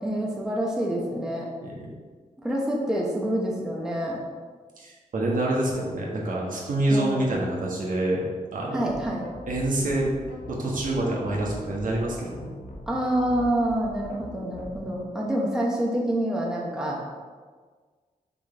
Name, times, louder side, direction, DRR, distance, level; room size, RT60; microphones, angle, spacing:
voice 1, 0.0-1.5 2.4-4.2 6.9-7.2 8.7-9.3 12.9-17.1, right 1 dB, 5° right, -3 dB, 0.9 m, -27 dB
voice 2, 4.8-8.3 8.5-8.9 9.5-10.1 10.5-12.5, right 1 dB, 70° right, -3 dB, 1.4 m, -26 dB
sound 1, 8.9-14.9, left 2 dB, 70° left, 1.0 m, -41 dB
6.1 x 3.8 x 4.5 m, 1.5 s
wide cardioid pair, 145°, 14 cm